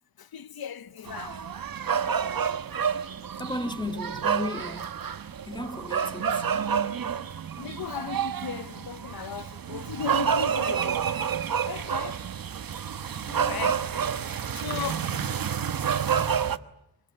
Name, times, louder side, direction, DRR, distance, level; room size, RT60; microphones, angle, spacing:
voice 1, 0.2-1.4 7.6-11.0 11.6-12.2 13.3-13.8 14.3-15.4 16.1-16.3, left 8 dB, 85° left, 1.1 m, -37 dB
sound 1, 1.1-16.6, right 7 dB, 70° right, 1.2 m, -29 dB
voice 2, 3.4-5.0 5.5-7.5 13.2-13.6, left 2 dB, 10° left, 1.7 m, -36 dB
24.5 x 23.0 x 9.8 m
wide cardioid pair, 100°, 36 cm